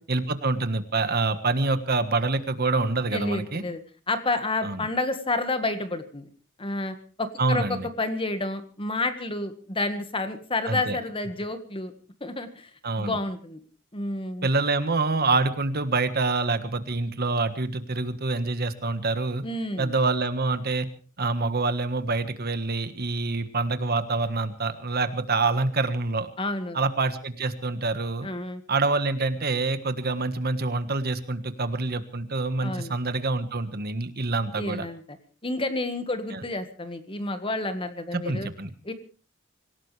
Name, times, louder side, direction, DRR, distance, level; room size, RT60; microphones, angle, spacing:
voice 1, 0.1-3.6 4.6-4.8 7.4-7.9 10.7-11.0 12.8-13.2 14.4-19.4 19.8-20.9 21.2-26.3 26.7-28.3 28.7-34.9 36.3-36.4 38.1-38.7, right 3 dB, 50° right, 10 dB, 1.5 m, -26 dB
voice 2, 3.1-3.8 4.1-6.3 6.6-11.9 12.2-12.7 13.0-13.6 13.9-14.5 19.4-19.9 26.4-26.8 28.2-28.6 32.6-32.9 34.6-35.0 35.4-38.5 38.8-38.9, left 2 dB, 25° left, 9 dB, 1.7 m, -30 dB
25.5 x 17.0 x 3.3 m, 0.38 s
head